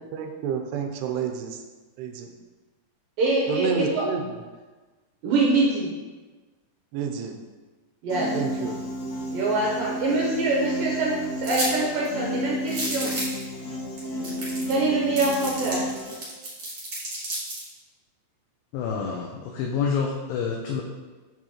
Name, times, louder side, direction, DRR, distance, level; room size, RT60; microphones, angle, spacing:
voice 1, 0.0-1.6 2.0-2.3 3.5-4.2 6.9-7.4 8.3-8.7, right 6 dB, 90° right, 5 dB, 2.7 m, -29 dB
voice 2, 3.2-4.0 5.2-5.9 8.0-8.3 9.3-13.1 14.7-15.8, right 2 dB, 70° right, -4 dB, 2.3 m, -24 dB
Piano, 8.1-16.1, equal, 65° left, 1.9 m, -31 dB
sound 1, 11.4-11.7 12.0-12.1 12.7-13.4 14.0-14.1 14.2-14.8 15.2-17.6, right 1 dB, 45° right, 2.6 m, -32 dB
voice 3, 18.7-20.8, left 6 dB, 80° left, 0 dB, 2.1 m, -28 dB
7.0 x 6.2 x 3.0 m, 1.3 s
omnidirectional pair, 4.7 m